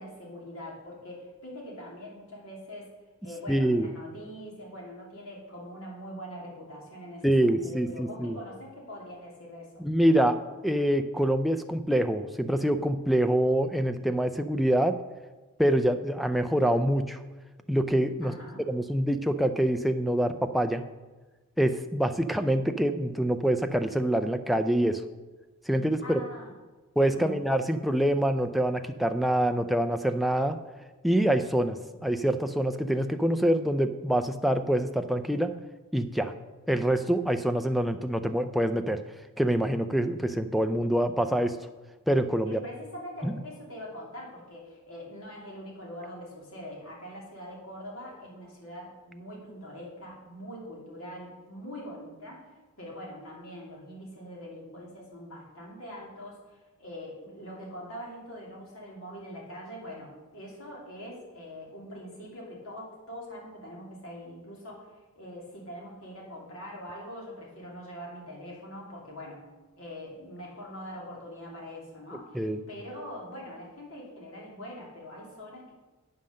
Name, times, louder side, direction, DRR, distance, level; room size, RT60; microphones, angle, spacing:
voice 1, 0.0-2.9 3.2-9.8 18.2-18.6 26.0-26.5 27.1-27.4 42.4-52.5 52.8-69.4 69.8-75.7, equal, 65° left, -3 dB, 2.6 m, -43 dB
voice 2, 3.5-3.9 7.2-8.4 9.8-10.4 10.6-15.0 15.6-17.2 17.7-18.3 18.7-20.8 21.6-25.0 25.7-26.2 27.0-30.6 31.0-35.5 35.9-36.3 36.7-39.0 39.4-41.6 42.1-42.6 43.2-43.4 72.3-72.6, right 1 dB, ahead, 7 dB, 0.3 m, -25 dB
8.7 x 5.6 x 6.4 m, 1.2 s
head